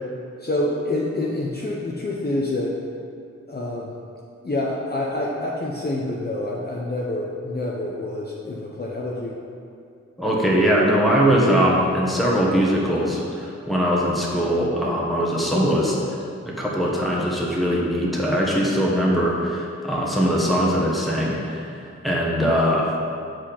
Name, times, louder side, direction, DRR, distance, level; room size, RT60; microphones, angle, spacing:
voice 1, 0.4-2.7 3.5-3.9 4.4-9.3, left 1 dB, 35° left, -4 dB, 0.8 m, -27 dB
voice 2, 10.2-22.8, equal, ahead, -5 dB, 1.5 m, -21 dB
7.6 x 5.0 x 4.4 m, 2.4 s
wide cardioid pair, 65°, 29 cm